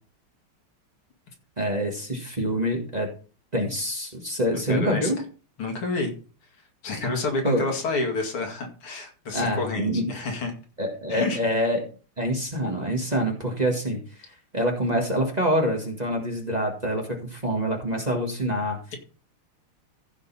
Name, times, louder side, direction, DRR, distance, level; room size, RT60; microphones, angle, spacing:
voice 1, 1.6-3.1 3.5-5.2 7.4-7.7 9.3-10.2 10.8-11.8 12.2-14.0 14.5-18.8, equal, 20° right, 1 dB, 1.7 m, -26 dB
voice 2, 4.5-5.1 5.6-6.1 6.8-10.5 11.1-11.4, left 3 dB, 80° left, 3 dB, 3.0 m, -29 dB
15.0 x 5.4 x 4.2 m, 0.37 s
omnidirectional pair, 2.3 m